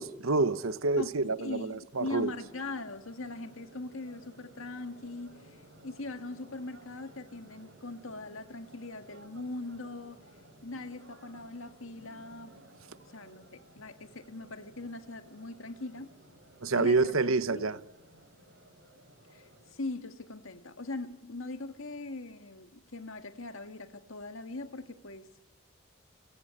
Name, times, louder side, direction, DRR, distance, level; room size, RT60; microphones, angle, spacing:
voice 1, 0.0-2.3 16.6-17.8, right 3 dB, 90° right, 1.0 m, -28 dB
voice 2, 1.0-10.3 10.6-12.5 13.1-16.2 16.8-17.2 17.5-17.7 19.3-25.3, left 2 dB, 80° left, 1.9 m, -41 dB
sound 1, 1.9-19.8, right 1 dB, 60° right, 7.6 m, -57 dB
29.5 x 16.0 x 8.9 m
head